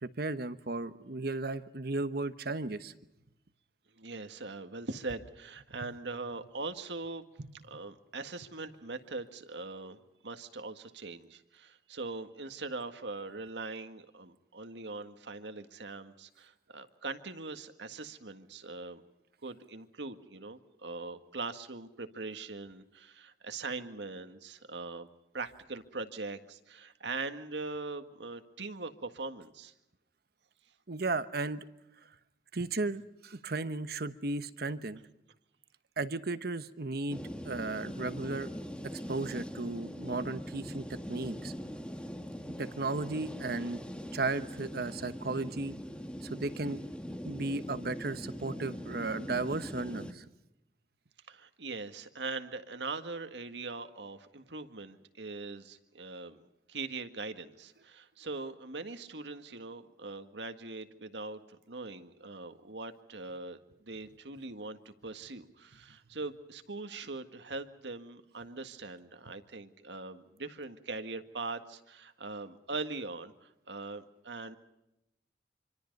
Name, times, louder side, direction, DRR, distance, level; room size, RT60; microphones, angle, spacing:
voice 1, 0.0-2.9 5.8-5.9 30.9-31.6 32.5-35.0 36.0-38.5 39.1-41.5 42.6-43.8 44.1-45.7 46.2-46.8 47.2-50.2, right 3 dB, 60° right, 12 dB, 1.1 m, -35 dB
voice 2, 4.0-7.2 7.6-19.0 19.4-25.1 25.3-29.7 51.3-74.6, right 3 dB, 80° right, 8 dB, 1.8 m, -41 dB
sound 1, 37.1-50.1, equal, 5° left, 1.6 m, -42 dB
26.0 x 25.5 x 5.4 m, 0.88 s
head